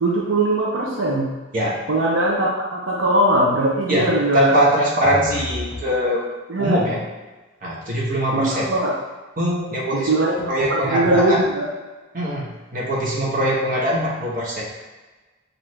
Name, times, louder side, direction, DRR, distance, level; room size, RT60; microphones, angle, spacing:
voice 1, 0.0-1.3 1.9-4.5 6.5-6.8 8.3-8.9 9.9-10.4 10.7-11.7, right 1 dB, 75° right, -3 dB, 0.7 m, -20 dB
voice 2, 3.9-6.3 6.6-7.0 7.6-8.7 9.4-10.1 10.5-11.5 12.1-14.6, equal, 45° right, -4 dB, 1.1 m, -22 dB
sound 1, 5.0-5.9 10.4-11.3, left 1 dB, 10° left, 1.2 m, -32 dB
6.0 x 2.7 x 3.1 m, 1.2 s
head